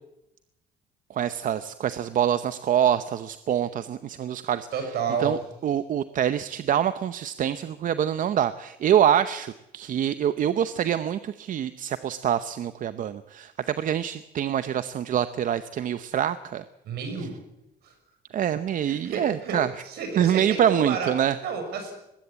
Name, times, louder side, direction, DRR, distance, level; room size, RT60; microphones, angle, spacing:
voice 1, 1.1-4.7 5.2-16.6 18.3-19.7 20.2-21.4, right 10 dB, 50° right, 12 dB, 0.8 m, -25 dB
voice 2, 4.7-5.4 16.8-17.4 17.8-17.9 18.8-21.1 21.4-21.9, right 5 dB, 70° right, 6 dB, 6.3 m, -31 dB
20.5 x 15.5 x 8.7 m, 0.89 s
cardioid pair, 110°, 17 cm